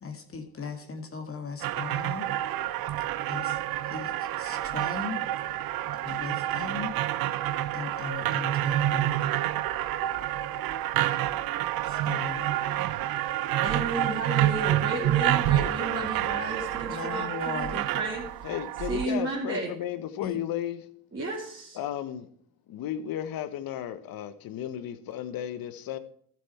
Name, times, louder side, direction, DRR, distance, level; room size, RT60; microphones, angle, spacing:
voice 1, 0.0-2.3 2.9-5.4 5.9-6.9 7.7-9.3 11.8-12.5 16.9-17.8 20.2-20.4, left 5 dB, 35° left, 1.8 m, -38 dB
sound 1, 1.6-19.1, right 13 dB, 65° right, 0.8 m, -28 dB
voice 2, 13.6-18.3 18.9-19.7 21.1-21.8, right 2 dB, 35° right, 2.9 m, -33 dB
voice 3, 15.5-16.2 18.4-20.9 21.7-22.3 22.7-26.0, left 11 dB, 65° left, 1.2 m, -34 dB
13.0 x 7.6 x 4.6 m
supercardioid pair, 75°, 38 cm